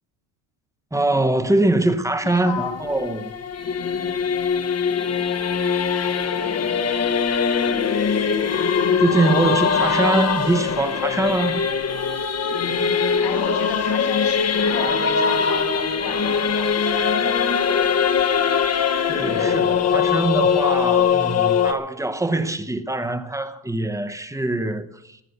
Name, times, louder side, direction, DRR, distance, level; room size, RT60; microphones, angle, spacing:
voice 1, 0.9-3.3 9.0-11.7 19.1-25.2, right 2 dB, 5° right, 0.9 m, -23 dB
voice 2, 2.2-2.9 13.2-16.7, left 6 dB, 70° left, 3.3 m, -34 dB
Singing / Musical instrument, 2.3-21.7, left 6 dB, 30° left, 1.0 m, -21 dB
14.5 x 10.5 x 6.7 m
cardioid pair, 130°, 48 cm